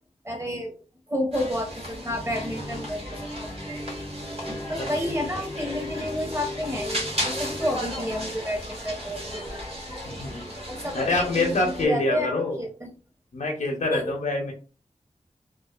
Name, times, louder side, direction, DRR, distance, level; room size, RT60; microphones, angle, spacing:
voice 1, 0.2-0.7 1.1-3.0 3.4-3.8 4.7-9.6 10.7-12.9 13.9-14.1, equal, 20° right, 2 dB, 0.8 m, -30 dB
sound 1, 1.3-11.9, equal, 50° right, 1.2 m, -35 dB
sound 2, 2.1-7.8, left 1 dB, 5° right, 0.3 m, -38 dB
voice 2, 10.0-10.4 10.9-12.6 13.3-14.5, left 2 dB, 75° left, 1 dB, 0.6 m, -25 dB
2.3 x 2.3 x 2.3 m, 0.35 s
wide cardioid pair, 90°, 13 cm